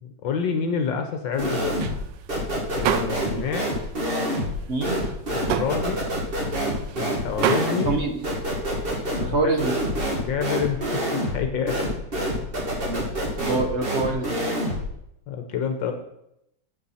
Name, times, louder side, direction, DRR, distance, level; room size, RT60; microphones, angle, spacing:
voice 1, 0.0-1.8 2.7-3.7 5.3-6.1 7.0-8.0 9.2-9.4 10.2-10.8 11.1-11.9 15.3-15.9, left 6 dB, 70° left, 5 dB, 1.6 m, -27 dB
sound 1, 1.3-3.6 3.8-8.3, right 8 dB, 75° right, 1.3 m, -30 dB
sound 2, 1.4-2.0 2.3-14.9, equal, 30° right, 1.7 m, -27 dB
voice 2, 4.7-5.0 7.8-8.2 9.2-9.8 12.9-13.1 13.4-14.4, right 3 dB, 50° right, 5 dB, 0.9 m, -25 dB
8.0 x 6.8 x 5.6 m, 0.80 s
omnidirectional pair, 2.1 m